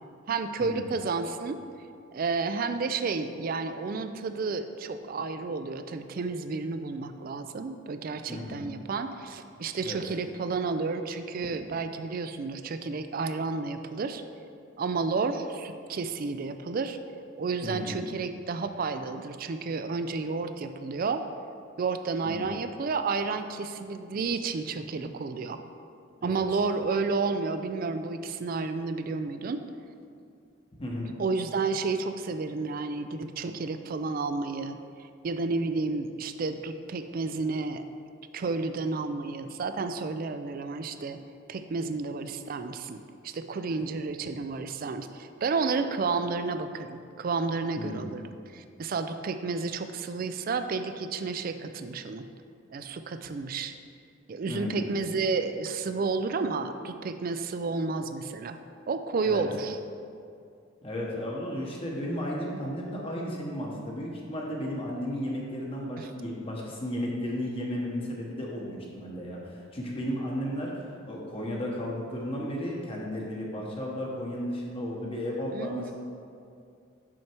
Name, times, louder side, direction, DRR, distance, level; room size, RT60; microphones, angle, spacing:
voice 1, 0.3-1.6 2.1-14.2 14.8-17.0 17.4-21.3 21.8-25.6 26.2-29.6 31.2-37.8 38.3-41.2 41.5-43.0 43.2-52.2 52.7-53.7 54.3-58.6 58.9-59.8 66.0-66.1 75.5-75.9, right 4 dB, 45° right, 9 dB, 0.4 m, -31 dB
voice 2, 8.3-8.7 9.8-10.0 17.6-18.0 22.2-22.5 26.2-26.4 30.8-31.1 47.8-48.1 54.5-54.8 59.2-59.5 60.8-70.7 71.0-75.9, equal, 30° left, -3 dB, 0.9 m, -34 dB
6.3 x 5.8 x 4.4 m, 2.4 s
head